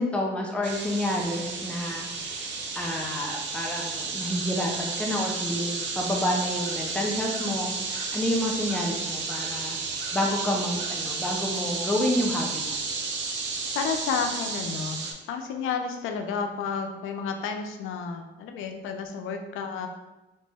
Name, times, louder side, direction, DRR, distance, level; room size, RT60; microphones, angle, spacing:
voice 1, 0.0-9.8 10.1-12.8, left 1 dB, 5° left, -1 dB, 0.5 m, -29 dB
sound 1, 0.6-15.1, right 4 dB, 65° right, 0.5 m, -32 dB
voice 2, 13.7-19.9, left 5 dB, 85° left, 5 dB, 0.4 m, -31 dB
2.9 x 2.1 x 3.3 m, 1.0 s
cardioid pair, 90°, 20 cm